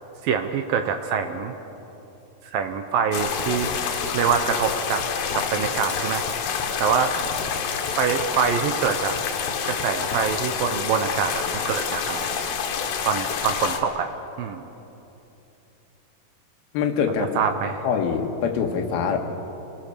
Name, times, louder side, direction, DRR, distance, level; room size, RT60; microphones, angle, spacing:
voice 1, 0.2-1.5 2.5-3.7 4.1-5.0 5.3-6.3 6.8-7.1 7.9-9.2 9.7-12.5 13.1-14.6 17.4-17.9, right 7 dB, 75° right, 7 dB, 2.3 m, -25 dB
sound 1, 3.1-13.8, left 7 dB, 90° left, 3.7 m, -28 dB
voice 2, 16.7-17.4 17.8-19.2, left 6 dB, 70° left, 4 dB, 3.0 m, -24 dB
27.0 x 19.0 x 6.8 m, 3.0 s
omnidirectional pair, 4.8 m